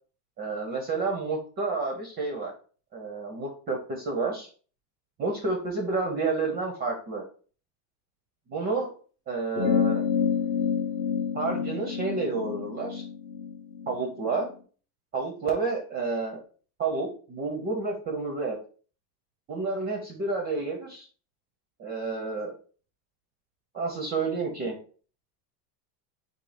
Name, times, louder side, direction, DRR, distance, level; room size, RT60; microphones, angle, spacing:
voice 1, 0.4-2.5 2.9-4.5 5.2-7.2 8.5-8.9 9.3-10.0 11.3-13.0 13.9-14.5 15.1-16.4 16.8-18.6 19.5-21.1 21.8-22.5 23.7-24.8, right 3 dB, 20° right, 2 dB, 0.5 m, -30 dB
sound 1, 9.6-14.4, left 7 dB, 55° left, 0.9 m, -28 dB
4.1 x 2.7 x 4.8 m, 0.40 s
supercardioid pair, 160°, 48 cm